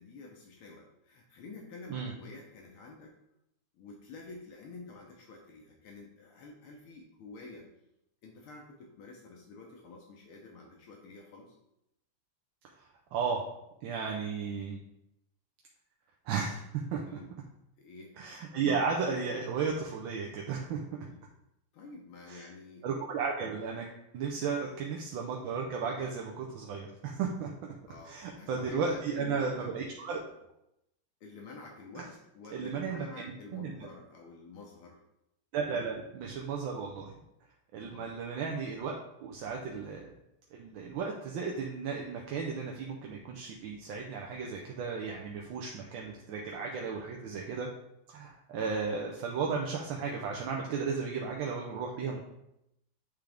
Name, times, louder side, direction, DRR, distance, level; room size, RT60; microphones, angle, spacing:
voice 1, 0.0-3.2 3.7-7.7 8.2-11.5 17.1-17.3 17.8-18.2 21.0-21.2 21.7-22.9 24.4-24.7 27.8-29.7 31.2-35.0 37.8-38.1, left 3 dB, 80° left, 0 dB, 1.7 m, -49 dB
voice 2, 13.1-13.4 13.8-14.8 16.3-16.6 16.9-17.0 18.2-20.8 22.3-22.4 22.8-23.9 24.1-27.5 28.0-30.2 32.0-32.1 32.5-33.9 35.5-37.2 37.7-39.0 39.2-40.1 40.5-47.7 48.1-52.2, right 5 dB, 75° right, 0 dB, 1.4 m, -34 dB
9.0 x 3.5 x 3.4 m, 0.83 s
omnidirectional pair, 2.4 m